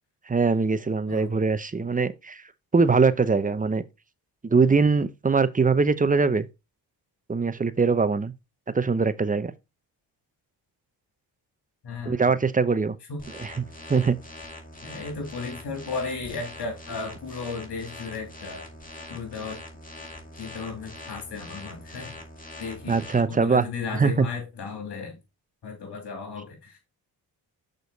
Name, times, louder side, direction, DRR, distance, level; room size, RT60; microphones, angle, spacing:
voice 1, 0.3-2.4 2.7-3.8 4.4-6.5 7.3-8.3 8.7-9.5 12.1-13.0 13.4-13.5 13.9-14.2 22.9-23.7 23.9-24.3, right 4 dB, 20° right, 0.7 m, -22 dB
voice 2, 11.8-12.2 13.1-13.2 14.8-18.7 19.1-19.6 20.4-22.2 22.6-25.1 25.6-26.8, left 4 dB, 65° left, 2.9 m, -35 dB
sound 1, 13.2-23.2, left 1 dB, 20° left, 2.3 m, -43 dB
6.3 x 5.2 x 4.0 m
cardioid pair, 75°, 43 cm